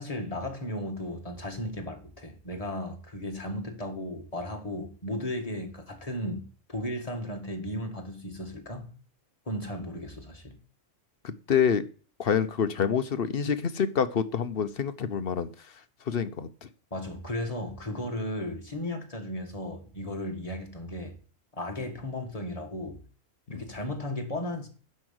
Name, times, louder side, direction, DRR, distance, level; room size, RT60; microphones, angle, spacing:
voice 1, 0.0-8.9 9.5-10.6 16.9-21.2 21.5-23.0 23.5-24.7, left 1 dB, 30° left, 2.1 m, -35 dB
voice 2, 11.2-11.8 12.2-15.5 16.1-16.5 23.5-23.6, left 7 dB, 55° left, 0.9 m, -27 dB
11.0 x 5.6 x 7.8 m
omnidirectional pair, 1.3 m